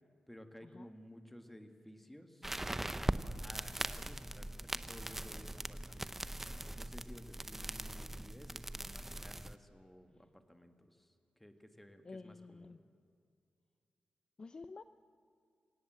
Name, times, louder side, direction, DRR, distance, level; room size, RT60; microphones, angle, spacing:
voice 1, 0.3-3.1 3.4-12.8, equal, 5° left, 6 dB, 1.6 m, -56 dB
sound 1, 2.4-9.6, right 1 dB, 10° right, 0.7 m, -41 dB
voice 2, 12.0-12.8 14.4-14.8, left 3 dB, 35° left, 11 dB, 0.5 m, -50 dB
26.5 x 17.5 x 7.7 m, 2.4 s
wide cardioid pair, 125°, 3 cm